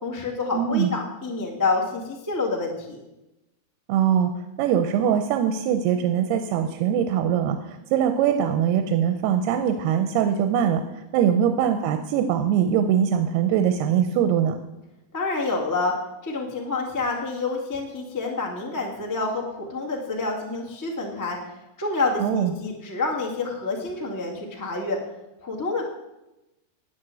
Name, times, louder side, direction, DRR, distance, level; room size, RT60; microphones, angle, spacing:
voice 1, 0.0-3.0 15.1-15.9 16.2-21.4 21.8-25.0 25.4-25.8, left 3 dB, 25° left, -1 dB, 0.4 m, -28 dB
voice 2, 0.5-0.9 3.9-4.3 4.6-14.6 22.2-22.5, right 9 dB, 90° right, 7 dB, 2.7 m, -22 dB
9.7 x 8.7 x 7.6 m, 0.97 s
omnidirectional pair, 4.5 m